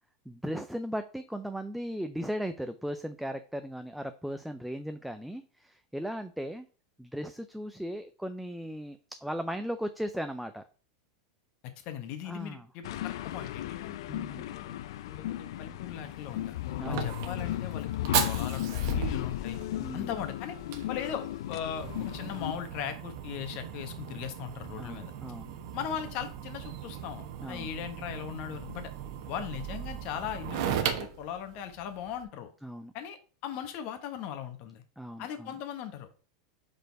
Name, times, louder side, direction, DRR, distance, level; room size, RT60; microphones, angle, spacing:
voice 1, 0.3-6.7 7.0-10.6 12.3-12.7 14.1-14.5 16.8-17.1 19.8-20.1 24.8-25.5 27.4-27.7 32.6-32.9 35.0-35.5, equal, ahead, 8 dB, 0.4 m, -37 dB
voice 2, 11.6-14.7 15.0-19.6 19.9-20.6 20.9-25.1 25.7-28.9 29.3-32.5 32.9-34.8 35.2-36.3, left 9 dB, 50° left, 7 dB, 1.2 m, -39 dB
sound 1, 12.8-22.5, left 13 dB, 75° left, 0.4 m, -35 dB
Fire, 16.0-32.2, right 8 dB, 65° right, 1.1 m, -37 dB
5.2 x 4.4 x 4.6 m, 0.39 s
supercardioid pair, 125°, 3 cm